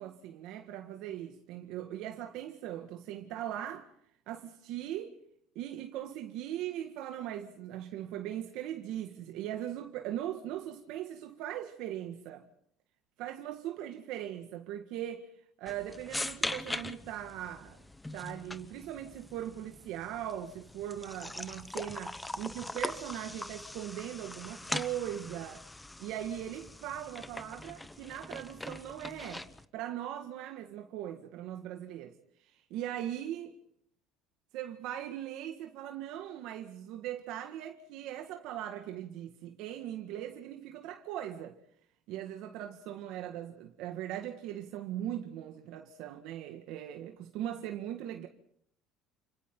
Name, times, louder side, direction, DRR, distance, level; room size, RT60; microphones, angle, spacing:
voice 1, 0.0-3.9 4.3-5.2 5.6-12.4 13.2-15.3 15.6-17.8 18.1-25.7 26.0-29.5 29.7-32.1 32.5-33.5 34.5-41.6 42.1-48.3, right 11 dB, 70° right, 1.9 m, -40 dB
sound 1, 15.7-29.7, left 1 dB, 5° left, 1.0 m, -41 dB
30.0 x 27.0 x 3.9 m
cardioid pair, 130°, 0 cm